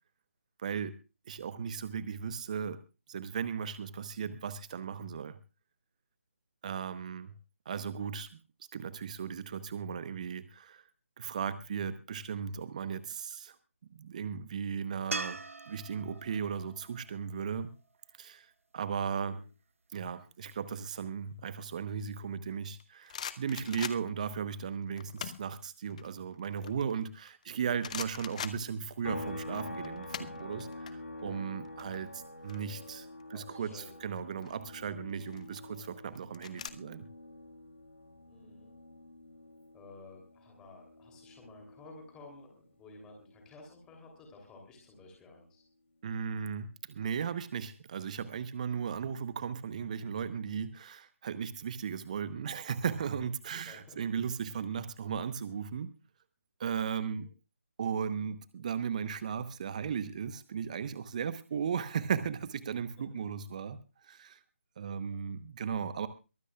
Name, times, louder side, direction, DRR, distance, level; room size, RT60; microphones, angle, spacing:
voice 1, 0.6-0.9 1.3-2.8 3.1-5.4 6.6-7.3 7.7-8.4 8.7-10.8 11.2-13.6 13.9-15.4 15.7-17.7 18.2-19.4 19.9-37.0 46.0-55.9 56.6-57.3 57.8-63.8 64.0-64.4 64.8-66.1, right 7 dB, 30° right, 13 dB, 0.9 m, -36 dB
sound 1, 15.1-18.3 21.6-21.7, right 3 dB, 70° right, 1.0 m, -42 dB
sound 2, 22.6-24.3 25.0-25.5 25.9-27.4 27.8-29.2 29.5-30.9 31.2-31.4 31.6-33.2 34.2-34.6 35.2-36.7, left 8 dB, 30° left, 0.8 m, -42 dB
sound 3, 29.0-42.6 42.9-45.1, left 2 dB, 65° left, 2.8 m, -47 dB
voice 2, 33.3-34.1 38.3-38.7 39.7-45.6 53.6-54.0 56.9-57.3 64.9-65.2, left 3 dB, 10° left, 2 dB, 3.1 m, -54 dB
23.0 x 15.0 x 2.3 m, 0.31 s
figure-of-eight pair, 155°, 7 cm